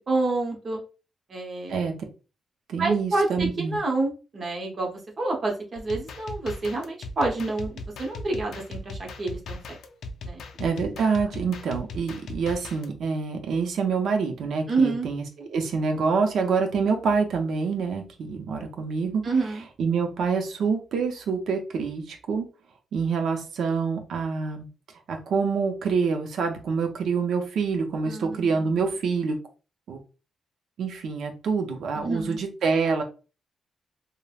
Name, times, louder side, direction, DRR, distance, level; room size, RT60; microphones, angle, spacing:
voice 1, 0.1-0.8 1.3-1.8 2.8-9.8 10.2-10.4 14.7-15.1 19.2-19.6 28.0-29.0 31.9-32.4, right 3 dB, 35° right, 1 dB, 0.8 m, -28 dB
voice 2, 2.7-3.8 10.6-19.2 19.8-22.5 22.9-24.7 25.1-29.4 29.9-30.0 30.8-33.0, right 5 dB, 75° right, 4 dB, 0.5 m, -26 dB
sound 1, 5.8-12.9, left 2 dB, 80° left, 0.3 m, -38 dB
3.2 x 2.0 x 2.3 m, 0.33 s
wide cardioid pair, 155°, 0 cm